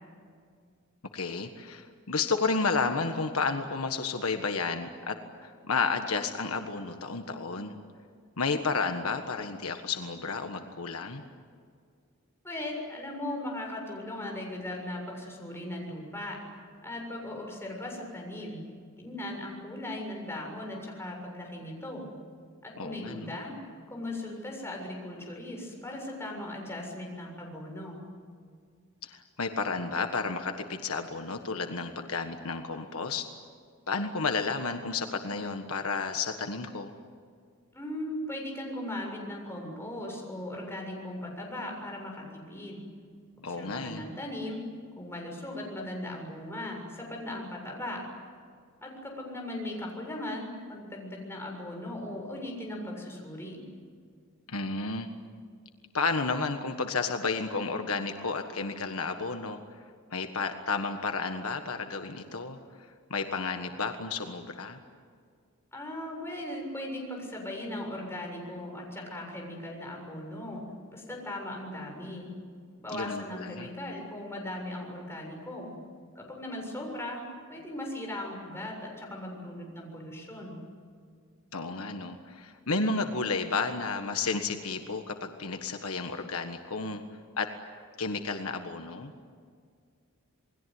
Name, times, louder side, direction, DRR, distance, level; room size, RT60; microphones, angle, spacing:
voice 1, 1.1-7.8 8.4-11.2 22.8-23.3 29.0-33.2 33.9-36.9 43.4-44.0 54.5-55.1 55.9-59.6 60.1-62.6 63.1-64.8 72.9-73.7 81.5-87.0 87.4-87.5 88.0-89.1, left 4 dB, 70° left, 6 dB, 1.5 m, -32 dB
voice 2, 12.4-16.4 16.8-18.6 19.0-22.1 22.6-23.6 23.9-28.0 37.7-42.8 43.4-44.6 45.0-48.0 48.8-53.6 65.7-70.6 70.9-72.3 72.8-75.7 76.2-77.2 77.5-80.6, left 1 dB, 10° left, 0 dB, 7.2 m, -38 dB
28.5 x 21.0 x 9.6 m, 2.1 s
head